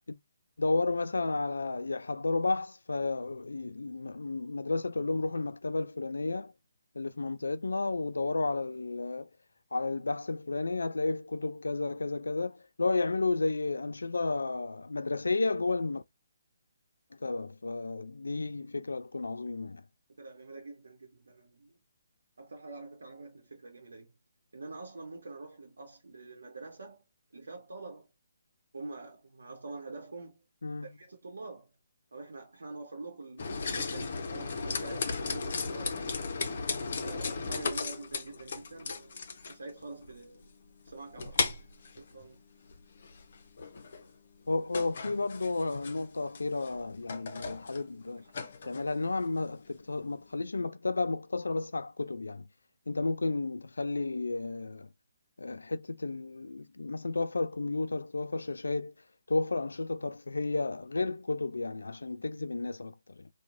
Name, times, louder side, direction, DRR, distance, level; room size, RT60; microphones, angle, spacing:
voice 1, 0.6-6.5 6.9-9.3 9.7-16.0 17.2-19.8 30.6-30.9 44.5-48.2 48.6-52.4 52.9-54.9 55.4-58.9 59.3-63.3, left 3 dB, 80° left, 0.3 m, -32 dB
voice 2, 20.1-21.8 22.4-24.1 24.5-27.0 27.3-28.1 28.7-30.4 30.8-31.7 32.1-36.1 37.0-39.2 39.5-40.4 40.8-41.7 42.0-42.4 48.6-48.7, right 3 dB, 75° right, 0.9 m, -46 dB
sound 1, 33.4-50.4, left 4 dB, 55° left, 0.7 m, -37 dB
3.0 x 2.3 x 2.5 m
figure-of-eight pair, 145°, 0 cm